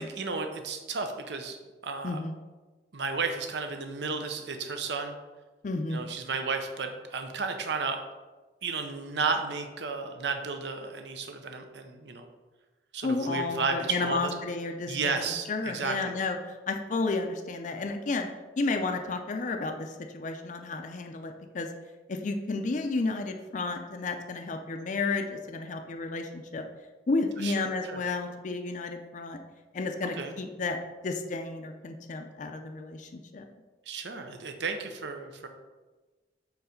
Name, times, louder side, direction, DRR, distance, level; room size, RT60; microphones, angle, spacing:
voice 1, 0.0-1.6 1.8-2.2 2.9-5.1 5.9-8.0 8.6-12.3 12.9-14.3 14.9-16.1 27.4-28.0 30.2-30.3 33.9-35.5, right 4 dB, 75° right, 6 dB, 0.7 m, -33 dB
voice 2, 2.0-2.4 5.6-6.0 13.0-18.3 18.6-21.7 22.1-26.7 27.1-29.4 29.7-30.8 31.0-33.4, left 3 dB, 45° left, 5 dB, 0.4 m, -32 dB
4.7 x 4.0 x 5.0 m, 1.2 s
head